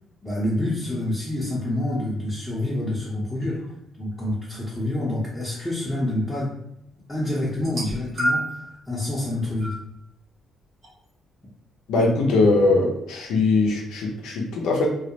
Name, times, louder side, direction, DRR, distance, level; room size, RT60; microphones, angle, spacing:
voice 1, 0.2-3.6 4.0-6.5 7.1-9.7, left 1 dB, 15° left, -8 dB, 0.7 m, -27 dB
sound 1, 7.6-8.7 9.6-9.8 10.8-10.9, right 1 dB, 50° right, 1.1 m, -27 dB
voice 2, 11.9-14.9, left 3 dB, 85° left, 0 dB, 0.5 m, -21 dB
2.3 x 2.0 x 2.8 m, 0.80 s
cardioid pair, 90°, 0 cm